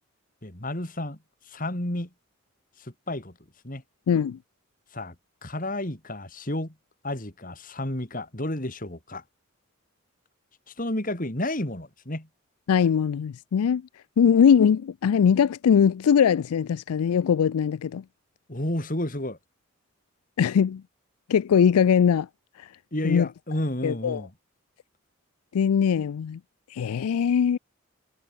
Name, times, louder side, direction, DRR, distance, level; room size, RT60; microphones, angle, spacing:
voice 1, 0.4-1.2 1.5-2.1 2.8-3.3 3.6-3.8 4.9-5.1 5.4-6.7 7.0-9.2 10.8-12.3 18.5-19.4 22.9-24.3, left 1 dB, 35° left, 2.8 m, -31 dB
voice 2, 4.1-4.4 12.7-13.8 14.2-18.0 20.4-20.8 21.3-22.3 23.0-23.3 23.8-24.2 25.5-26.4 26.7-27.6, left 7 dB, 85° left, 0.4 m, -21 dB
head